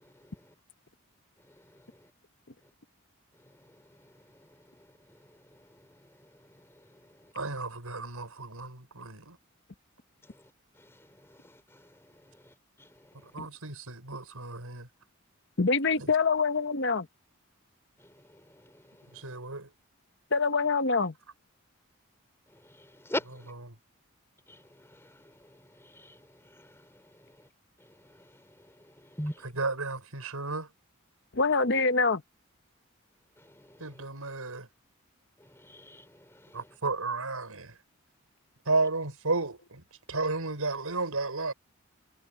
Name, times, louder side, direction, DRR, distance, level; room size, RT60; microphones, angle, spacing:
voice 1, 7.3-9.4 13.3-14.9 16.0-16.1 19.1-19.7 23.5-23.6 29.4-30.7 33.8-34.7 36.5-37.7 38.7-41.5, right 3 dB, 85° right, 5.3 m, -33 dB
voice 2, 15.6-17.1 20.3-21.1 31.3-32.2, left 4 dB, 55° left, 1.0 m, -25 dB
voice 3, 22.8-23.5 24.5-24.6 25.0-25.1 25.8-26.2 26.6-26.7 29.1-29.4 33.7-33.8 35.5-36.1, left 1 dB, 10° left, 3.8 m, -38 dB
head